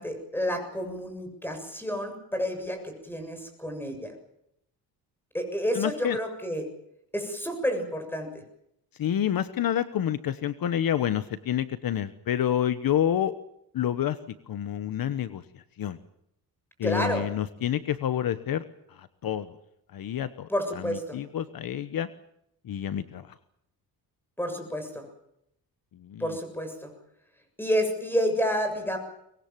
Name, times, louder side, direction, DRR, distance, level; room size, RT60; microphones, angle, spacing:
voice 1, 0.0-4.1 5.3-6.7 7.1-8.3 16.8-17.3 20.5-21.2 24.4-25.0 26.2-26.9 27.6-29.0, equal, 5° left, 6 dB, 7.2 m, -29 dB
voice 2, 5.7-6.2 9.0-13.3 13.7-14.2 14.5-16.0 16.8-19.5 19.9-20.5 20.8-22.1 22.6-23.3 26.0-26.4, left 10 dB, 60° left, 12 dB, 1.2 m, -28 dB
24.0 x 21.0 x 7.5 m, 0.77 s
cardioid pair, 125°, 39 cm